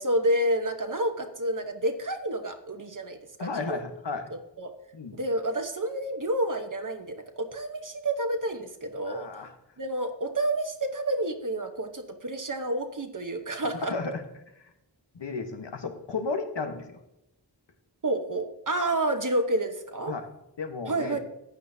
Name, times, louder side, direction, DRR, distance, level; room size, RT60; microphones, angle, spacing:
voice 1, 0.0-3.8 4.3-4.7 5.1-9.3 9.8-13.9 18.0-20.1 20.9-21.2, right 1 dB, 45° right, 5 dB, 1.0 m, -29 dB
voice 2, 3.4-4.2 4.9-5.2 9.0-9.5 13.8-14.2 15.1-17.0 20.1-20.2 20.6-21.2, left 4 dB, 70° left, 6 dB, 1.3 m, -33 dB
14.5 x 9.2 x 2.8 m, 0.86 s
wide cardioid pair, 80°, 44 cm